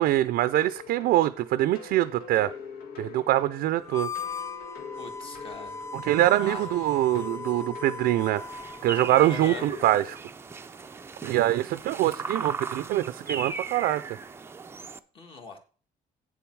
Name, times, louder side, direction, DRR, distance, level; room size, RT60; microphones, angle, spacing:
voice 1, 0.0-2.5 3.0-4.1 5.9-8.4 8.8-10.2 11.2-14.0, right 14 dB, 80° right, 13 dB, 0.5 m, -24 dB
sound 1, 0.5-10.2, left 6 dB, 75° left, 1.6 m, -44 dB
Harmonica, 3.8-9.5, left 4 dB, 20° left, 0.7 m, -38 dB
voice 2, 5.0-5.8 6.4-6.7 9.2-9.7 15.1-15.6, left 3 dB, 35° left, 5 dB, 1.8 m, -40 dB
sound 2, 8.4-15.0, right 4 dB, 15° right, 0.5 m, -37 dB
8.7 x 7.0 x 4.6 m, 0.39 s
cardioid pair, 170°, 15 cm